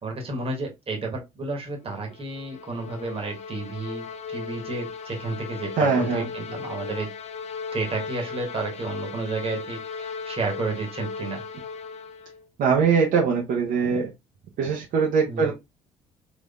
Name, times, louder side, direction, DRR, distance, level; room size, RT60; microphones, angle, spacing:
voice 1, 0.0-7.1 7.7-11.4 15.2-15.5, right 3 dB, 35° right, 1.4 m, -31 dB
sound 1, 1.9-12.4, left 5 dB, 40° left, 0.6 m, -37 dB
voice 2, 5.8-6.3 12.6-14.1 14.6-15.5, right 5 dB, 55° right, 0.8 m, -22 dB
3.8 x 3.0 x 2.4 m
figure-of-eight pair, 55°, 17 cm